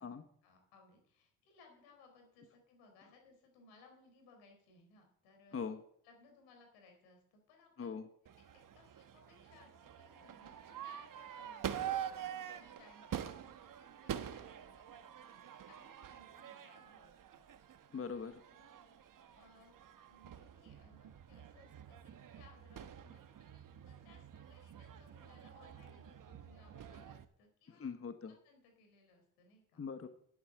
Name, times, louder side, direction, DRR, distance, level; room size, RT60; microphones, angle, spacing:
voice 1, 0.0-5.7 6.0-7.9 8.5-17.4 18.5-19.8 20.1-27.9 28.4-29.8, left 3 dB, 85° left, 3 dB, 4.1 m, -65 dB
Crowd / Fireworks, 8.3-27.3, right 9 dB, 50° right, 1.1 m, -47 dB
voice 2, 17.9-18.4 27.7-28.3 29.8-30.1, left 5 dB, 30° left, 8 dB, 1.3 m, -42 dB
11.0 x 8.5 x 7.8 m, 0.66 s
supercardioid pair, 60°, 43 cm